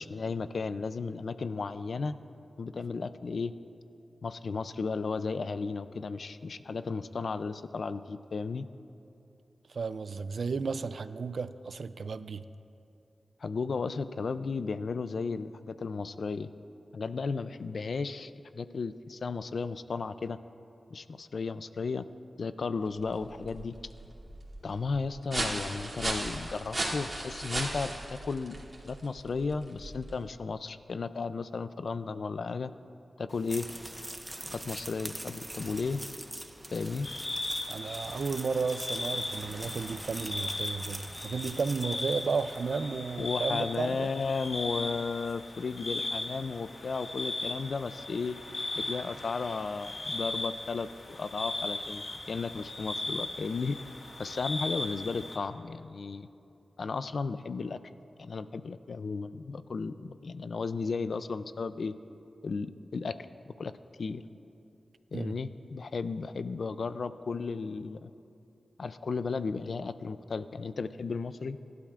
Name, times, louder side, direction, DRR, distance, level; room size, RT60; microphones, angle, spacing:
voice 1, 0.0-2.1 2.6-3.5 4.2-8.7 13.4-16.5 16.9-20.4 20.9-22.0 22.4-23.7 24.6-32.7 33.2-33.7 34.5-36.0 36.7-37.1 43.2-48.4 48.8-50.9 51.2-53.8 54.2-56.3 56.8-57.8 58.2-61.9 62.4-63.2 63.5-63.7 64.0-64.2 65.1-68.1 68.8-71.6, left 4 dB, 70° left, 13 dB, 0.4 m, -34 dB
voice 2, 9.7-12.5 37.7-44.1 65.1-65.4, right 4 dB, 75° right, 13 dB, 0.4 m, -33 dB
sound 1, 22.9-30.3, right 1 dB, 30° right, 2.7 m, -37 dB
sound 2, 33.3-42.8, right 1 dB, 15° right, 1.0 m, -44 dB
sound 3, 37.0-55.4, left 2 dB, 55° left, 1.7 m, -38 dB
21.5 x 12.0 x 2.5 m, 2.7 s
cardioid pair, 55°, 0 cm